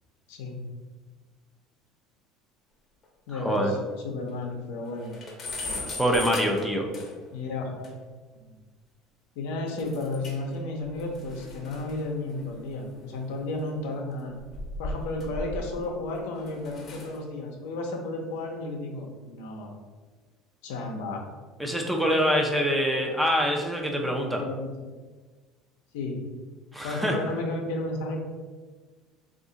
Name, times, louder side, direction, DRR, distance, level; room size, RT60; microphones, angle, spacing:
voice 1, 0.3-0.6 3.3-3.8 4.0-5.1 7.3-7.9 8.5-8.6 9.4-14.3 14.8-19.7 20.6-21.2 24.3-24.9 25.9-26.2 26.8-28.2, left 2 dB, 85° left, 1 dB, 0.6 m, -33 dB
sound 1, 3.0-3.1 3.5-3.6 3.9-4.0 4.3-4.4 4.8-7.4 7.8-7.9 9.8-10.5 10.8-13.5 14.3-15.9 16.4-17.2, left 2 dB, 35° left, 0.7 m, -38 dB
voice 2, 3.3-3.7 6.0-6.9 21.6-24.4 26.7-27.2, equal, 5° right, 1 dB, 0.5 m, -25 dB
2.6 x 2.4 x 3.8 m, 1.4 s
supercardioid pair, 120°, 0 cm